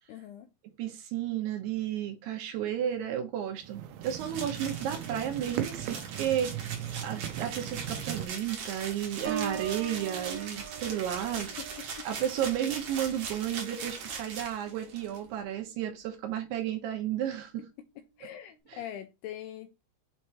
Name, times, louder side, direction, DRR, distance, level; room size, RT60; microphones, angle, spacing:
voice 1, 0.1-0.5 11.4-12.1 18.2-19.8, left 11 dB, 85° left, 2.3 m, -43 dB
voice 2, 0.8-6.8 7.0-11.5 12.0-17.6 18.7-18.8, right 10 dB, 75° right, 2.9 m, -33 dB
sound 1, 3.6-8.3, right 11 dB, 90° right, 3.1 m, -38 dB
sound 2, 4.0-15.2, right 5 dB, 55° right, 2.1 m, -41 dB
Piano, 9.2-14.9 15.3-15.7, right 8 dB, 40° right, 1.1 m, -42 dB
7.9 x 3.1 x 4.4 m
omnidirectional pair, 5.2 m